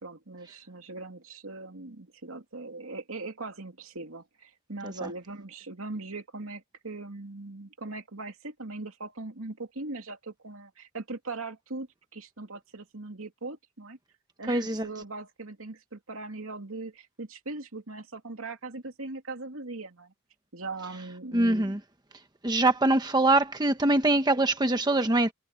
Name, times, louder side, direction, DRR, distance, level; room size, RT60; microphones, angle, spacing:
voice 1, 0.0-11.9 12.1-14.0 14.4-20.1 20.5-21.6, right 3 dB, 80° right, 2.8 m, -40 dB
voice 2, 14.5-14.9 21.3-21.8 22.4-25.3, right 2 dB, 20° right, 1.0 m, -23 dB
head